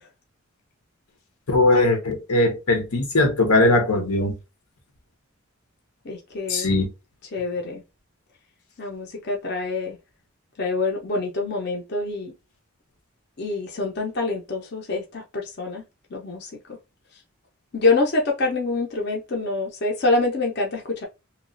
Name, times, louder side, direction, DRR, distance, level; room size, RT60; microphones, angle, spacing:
voice 1, 1.5-4.3 6.5-6.9, left 2 dB, 90° left, 0.9 m, -20 dB
voice 2, 6.0-6.7 7.3-7.8 8.8-10.0 10.6-12.3 13.4-15.8 16.1-16.8 17.7-21.0, left 3 dB, 50° left, 0.6 m, -26 dB
3.0 x 2.3 x 2.5 m
head